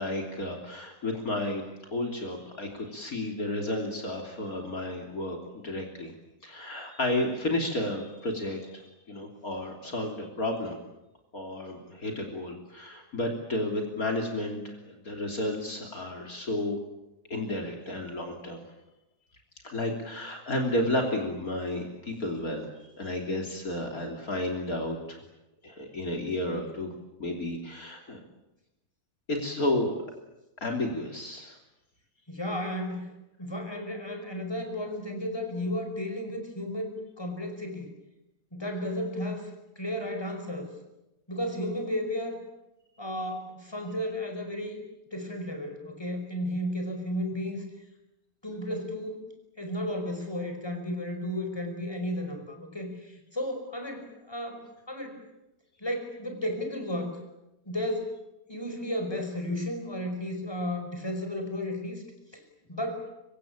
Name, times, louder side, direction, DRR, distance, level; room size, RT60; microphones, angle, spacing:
voice 1, 0.0-1.6 1.9-6.1 6.4-10.8 11.3-16.8 17.3-18.6 19.6-22.7 23.0-25.2 25.6-26.9 27.2-28.2 29.3-30.0 30.6-31.6, left 1 dB, 55° left, 2 dB, 3.6 m, -32 dB
voice 2, 32.3-33.1 33.4-37.9 38.5-39.5 39.8-40.7 41.3-42.4 43.0-44.8 45.1-47.6 48.4-49.3 49.6-55.2 55.8-57.2 57.7-58.2 58.5-62.0 62.3-62.4 62.7-63.1, left 1 dB, 15° left, 5 dB, 5.3 m, -33 dB
25.0 x 24.0 x 8.8 m, 0.94 s
omnidirectional pair, 1.8 m